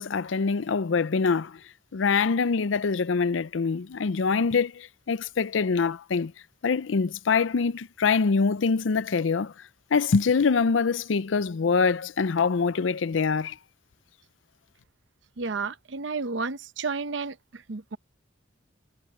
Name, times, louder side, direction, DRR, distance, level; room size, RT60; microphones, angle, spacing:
voice 1, 0.0-1.6 1.9-6.3 6.6-9.5 9.9-13.6, left 5 dB, 85° left, 0.5 m, -24 dB
voice 2, 15.4-18.0, right 4 dB, 70° right, 0.8 m, -32 dB
head